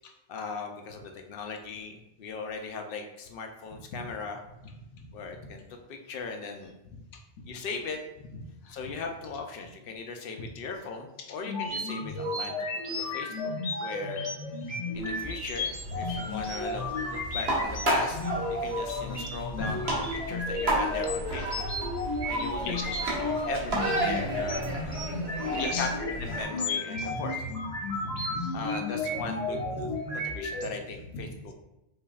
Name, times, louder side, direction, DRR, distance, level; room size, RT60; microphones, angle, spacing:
voice 1, 0.3-4.4 5.1-5.6 5.9-6.7 7.5-8.0 8.7-12.6 12.9-13.5 13.8-14.2 14.9-15.7 15.9-18.2 18.5-20.0 20.3-21.7 22.3-22.9 23.5-24.9 25.8-27.3 28.5-29.6 30.2-31.5, left 4 dB, 60° left, 3 dB, 0.6 m, -38 dB
voice 2, 4.6-5.2 7.1-7.5 8.6-8.9 11.2-11.4 12.9-13.1 16.0-16.1 19.6-19.7 22.6-23.6 25.5-25.9 27.0-27.2 27.8-28.7 29.2-29.9 30.6-30.8 31.1-31.2, left 3 dB, 85° left, 2 dB, 1.0 m, -39 dB
sound 1, 11.5-30.7, left 2 dB, 35° left, 0.9 m, -33 dB
sound 2, 14.9-26.5, right 2 dB, 60° right, 1.2 m, -33 dB
5.3 x 2.6 x 2.3 m, 0.92 s
omnidirectional pair, 1.2 m